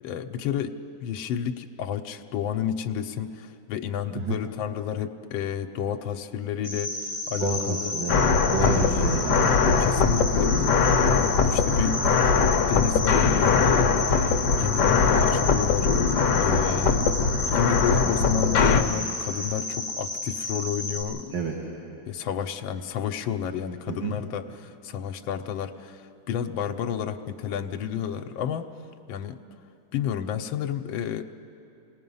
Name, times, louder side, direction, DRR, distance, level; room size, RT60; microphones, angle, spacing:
voice 1, 0.0-8.0 8.6-8.9 9.8-10.7 11.0-12.0 12.7-14.3 14.6-17.0 17.4-21.3 22.1-28.7 29.1-29.4 29.9-31.2, left 9 dB, 85° left, 5 dB, 1.5 m, -31 dB
Cricket, 6.6-21.0, left 2 dB, 40° right, 5.6 m, -32 dB
voice 2, 7.3-9.9 16.9-17.0 21.3-21.5 23.9-24.2, right 4 dB, 80° right, -2 dB, 2.5 m, -30 dB
sound 1, 8.1-18.8, left 5 dB, 65° left, 1.4 m, -21 dB
28.5 x 18.5 x 5.5 m, 2.7 s
omnidirectional pair, 2.2 m